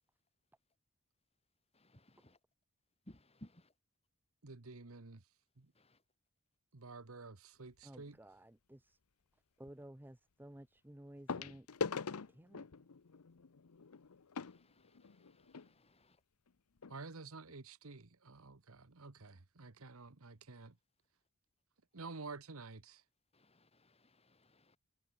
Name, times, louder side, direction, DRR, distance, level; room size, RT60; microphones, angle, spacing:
voice 1, 1.7-2.4 3.1-3.7 5.7-6.0 14.4-16.2 23.3-24.8, left 1 dB, 25° left, 3.7 m, -62 dB
voice 2, 4.4-5.2 5.6-5.7 6.7-8.2 16.9-20.8 21.9-23.0, right 3 dB, 75° right, 1.3 m, -50 dB
sound 1, 7.7-8.0 9.7-9.8 11.3-15.7 16.5-16.6 16.8-17.0 17.5-17.6, left 5 dB, 85° left, 0.8 m, -43 dB
voice 3, 7.8-9.0 9.6-12.0 12.3-12.7, right 1 dB, 10° right, 0.6 m, -55 dB
head